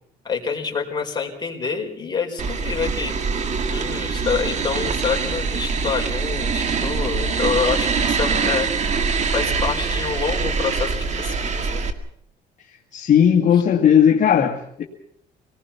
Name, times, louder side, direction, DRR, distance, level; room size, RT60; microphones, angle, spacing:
voice 1, 0.2-3.3 3.7-8.7 9.3-11.8, left 6 dB, 25° left, 0 dB, 4.9 m, -27 dB
sound 1, 2.4-11.9, right 5 dB, 45° right, 2.1 m, -24 dB
voice 2, 12.9-14.8, left 8 dB, 45° left, 0 dB, 2.1 m, -16 dB
26.5 x 19.5 x 5.8 m, 0.68 s
cardioid pair, 110°, 17 cm